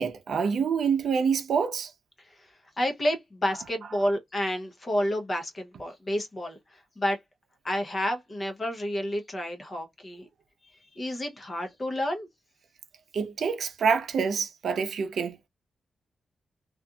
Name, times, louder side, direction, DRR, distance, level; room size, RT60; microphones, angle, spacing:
voice 1, 0.0-1.9 13.1-15.5, right 6 dB, 70° right, 0.5 m, -26 dB
voice 2, 2.2-7.2 7.6-10.3 10.6-12.3, equal, 30° left, 0.7 m, -30 dB
2.8 x 2.4 x 2.3 m
wide cardioid pair, 145°, 0 cm